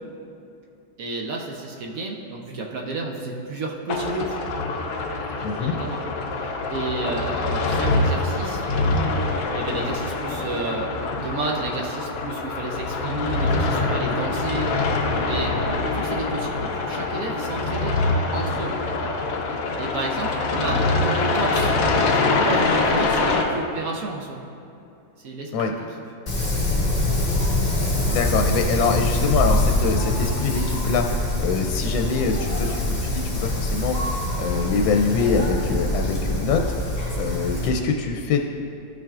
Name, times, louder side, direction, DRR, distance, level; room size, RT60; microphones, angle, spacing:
voice 1, 1.0-4.4 5.6-6.0 6.7-8.9 9.5-14.7 15.3-15.6 15.9-17.9 18.3-18.8 19.8-21.7 22.1-24.4 25.2-25.7 27.7-28.2, right 3 dB, 65° right, 0 dB, 0.9 m, -31 dB
sound 1, 3.9-23.4, left 3 dB, 65° left, 0.8 m, -24 dB
voice 2, 5.4-5.7 25.5-25.7 28.1-34.0 34.4-36.6 37.2-38.4, left 5 dB, 85° left, 3 dB, 1.3 m, -24 dB
Wind, 26.3-37.7, left 1 dB, 25° left, 1.2 m, -24 dB
12.5 x 5.8 x 2.4 m, 2.7 s
omnidirectional pair, 2.1 m